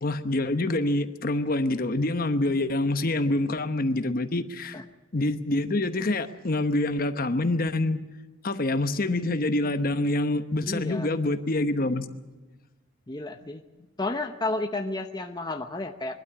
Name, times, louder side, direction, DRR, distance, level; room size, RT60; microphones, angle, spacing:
voice 1, 0.0-4.8 5.1-8.0 8.4-12.1, left 2 dB, 45° left, 10 dB, 0.9 m, -26 dB
voice 2, 10.6-11.1 13.1-13.6 14.0-16.2, left 2 dB, 20° left, 5 dB, 0.8 m, -32 dB
22.5 x 12.5 x 9.7 m, 1.2 s
head